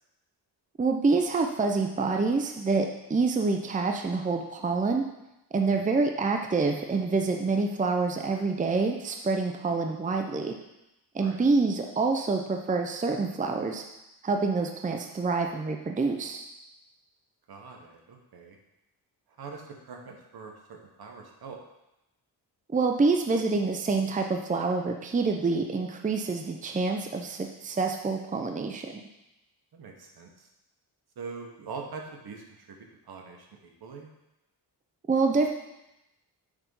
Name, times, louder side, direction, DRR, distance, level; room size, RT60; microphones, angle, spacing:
voice 1, 0.8-5.0 5.5-10.5 11.1-13.8 14.2-16.4 22.7-29.0 35.1-35.5, right 4 dB, 20° right, 3 dB, 0.6 m, -27 dB
voice 2, 17.5-18.6 19.4-21.6 29.7-30.5 31.2-34.1, right 5 dB, 65° right, 2 dB, 1.3 m, -43 dB
7.2 x 3.6 x 5.4 m, 0.91 s
cardioid pair, 90°, 41 cm